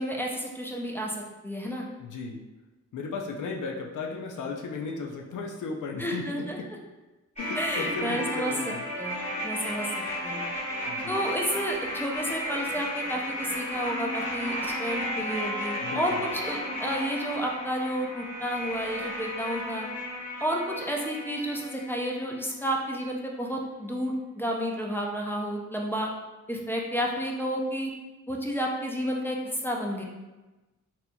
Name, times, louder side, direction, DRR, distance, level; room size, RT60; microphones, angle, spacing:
voice 1, 0.0-1.9 6.0-6.6 7.6-9.9 10.2-10.4 11.1-19.9 20.4-26.1 26.5-27.9 28.3-30.0, equal, 5° left, -1 dB, 0.4 m, -31 dB
voice 2, 2.0-2.4 2.9-6.7 7.4-8.9 10.9-11.2 15.8-16.2, left 4 dB, 75° left, 1 dB, 0.5 m, -35 dB
sound 1, 7.4-22.4 22.6-22.7, equal, 25° left, 1.3 m, -34 dB
4.2 x 2.7 x 2.2 m, 1.1 s
wide cardioid pair, 110°, 31 cm